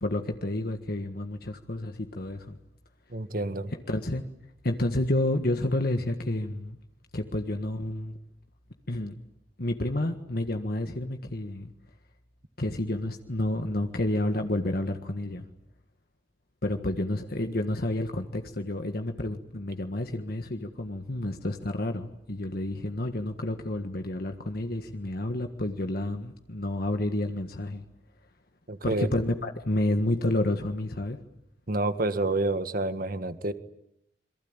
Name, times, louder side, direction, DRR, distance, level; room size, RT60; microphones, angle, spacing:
voice 1, 0.0-2.6 3.9-4.2 4.6-6.8 7.1-8.2 8.9-9.2 9.6-11.7 12.6-15.5 16.6-27.8 28.8-31.2, left 1 dB, 55° left, 5 dB, 1.6 m, -30 dB
voice 2, 3.1-3.7 28.7-29.1 31.7-33.5, right 2 dB, 50° right, 11 dB, 1.7 m, -28 dB
28.0 x 23.0 x 9.0 m, 0.77 s
head